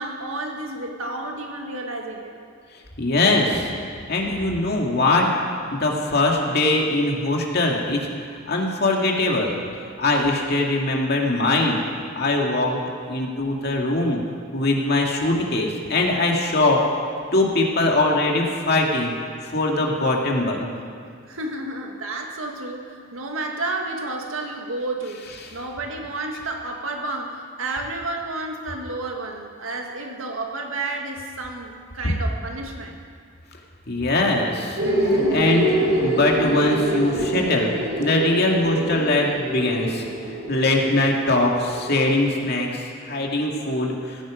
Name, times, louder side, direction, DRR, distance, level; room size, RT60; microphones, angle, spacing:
voice 1, 0.0-2.3 21.3-33.0, right 2 dB, 85° right, 2 dB, 1.9 m, -31 dB
voice 2, 3.0-3.7 4.1-5.3 5.7-8.1 8.5-9.6 10.0-11.8 12.2-14.2 14.5-16.8 17.3-19.1 19.5-20.7 33.9-34.8 35.1-35.7 36.0-37.7 38.0-40.0 40.5-44.2, left 2 dB, 50° left, 0 dB, 2.3 m, -21 dB
sound 1, 34.8-42.3, right 1 dB, 70° right, 4.0 m, -25 dB
17.5 x 15.5 x 5.1 m, 2.2 s
head